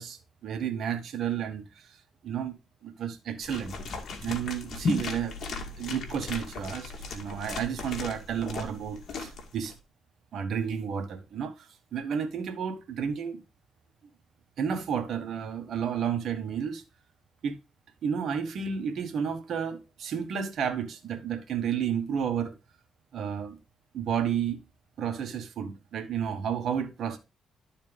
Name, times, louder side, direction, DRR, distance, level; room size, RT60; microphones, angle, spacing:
voice 1, 0.0-2.0 2.2-2.6 2.8-3.8 4.2-5.4 5.8-9.7 10.3-13.4 14.6-16.8 17.4-17.5 18.0-22.6 23.1-23.6 23.9-24.6 25.0-27.2, right 7 dB, 65° right, 1.4 m, -31 dB
sound 1, 3.4-9.7, left 4 dB, 60° left, 2.0 m, -36 dB
12.5 x 4.4 x 3.5 m
cardioid pair, 90°, 0 cm